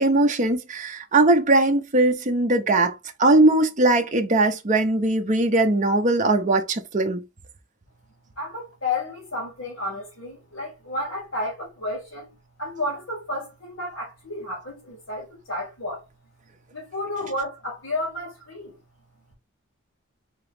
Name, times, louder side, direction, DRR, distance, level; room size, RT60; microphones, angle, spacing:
voice 1, 0.0-7.2, right 2 dB, 35° right, 0.6 m, -20 dB
voice 2, 8.4-16.1 16.7-18.8, left 2 dB, 65° left, 2.3 m, -32 dB
3.9 x 3.0 x 3.3 m
head